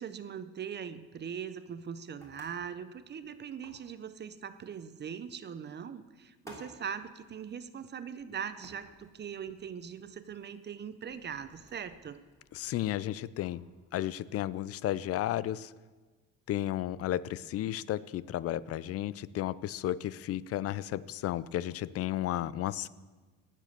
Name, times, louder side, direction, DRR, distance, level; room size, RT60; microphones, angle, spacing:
voice 1, 0.0-12.2, right 7 dB, 30° right, 12 dB, 0.6 m, -41 dB
sound 1, 1.4-13.6, equal, 10° left, 3.1 m, -59 dB
voice 2, 12.5-13.6 13.9-15.7 16.5-22.9, left 13 dB, 45° left, 20 dB, 0.5 m, -33 dB
18.5 x 7.5 x 6.6 m, 1.3 s
cardioid pair, 130°, 33 cm